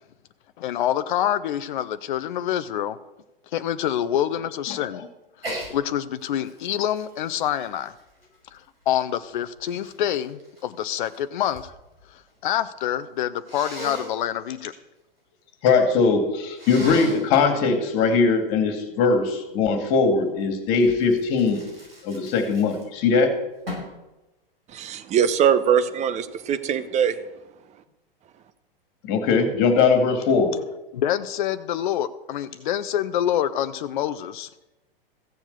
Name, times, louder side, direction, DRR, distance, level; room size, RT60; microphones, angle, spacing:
voice 1, 0.6-3.0 3.5-5.0 5.7-7.9 8.5-8.6 8.9-11.7 12.1-14.7 30.9-34.5, left 11 dB, 55° left, 12 dB, 0.6 m, -26 dB
Sneeze, 5.4-5.7 6.2-8.5 9.2-11.7 12.0-12.6 13.5-14.1 16.5-17.3 20.8-23.1 23.7-24.0, equal, 80° right, 5.8 m, -37 dB
voice 2, 15.6-21.6 22.0-23.3 29.1-30.5, left 4 dB, 40° left, 7 dB, 2.3 m, -20 dB
voice 3, 24.7-27.2, right 8 dB, 25° right, 12 dB, 0.9 m, -22 dB
15.0 x 7.2 x 6.7 m, 0.99 s
figure-of-eight pair, 100°, 29 cm